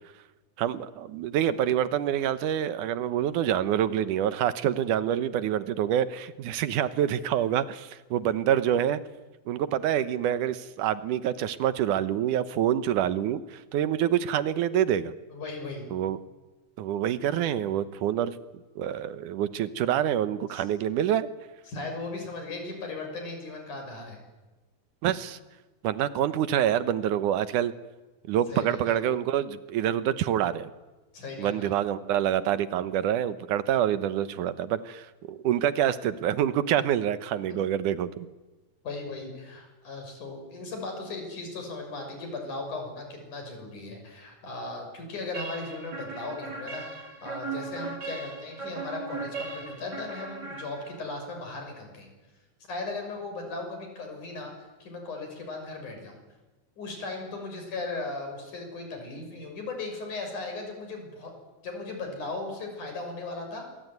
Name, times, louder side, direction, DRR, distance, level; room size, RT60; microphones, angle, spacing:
voice 1, 0.6-9.0 9.5-15.1 15.9-16.2 16.8-18.4 18.8-21.3 25.0-25.4 25.8-27.7 28.3-30.7 31.4-38.3, right 10 dB, 80° right, 14 dB, 2.6 m, -26 dB
voice 2, 15.3-15.9 20.5-20.6 21.7-24.2 28.5-28.9 31.1-31.7 37.5-37.6 38.8-52.1 52.7-56.2 56.8-61.3 61.6-63.7, left 3 dB, 75° left, 4 dB, 7.9 m, -37 dB
sound 1, 45.3-51.2, right 3 dB, 30° right, 3.9 m, -38 dB
26.0 x 23.0 x 9.5 m, 1.2 s
omnidirectional pair, 3.6 m